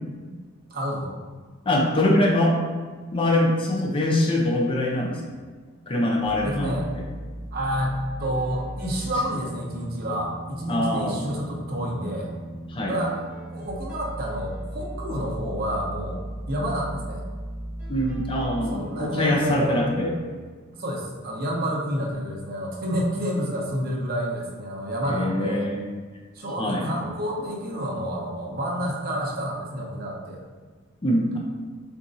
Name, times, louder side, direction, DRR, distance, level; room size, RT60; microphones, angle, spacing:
voice 1, 0.7-1.1 6.4-6.9 7.5-12.3 12.9-13.2 13.5-17.2 18.7-19.8 20.8-25.7 26.3-30.4, equal, 45° right, -2 dB, 0.8 m, -29 dB
voice 2, 1.7-2.6 3.1-5.2 5.9-7.0 10.7-11.2 12.7-13.0 17.9-20.1 25.0-26.0 26.6-26.9 31.0-31.4, left 1 dB, 25° left, -1 dB, 0.5 m, -23 dB
sound 1, 6.2-20.2, right 1 dB, 10° right, 1.1 m, -37 dB
6.9 x 2.5 x 2.6 m, 1.5 s
head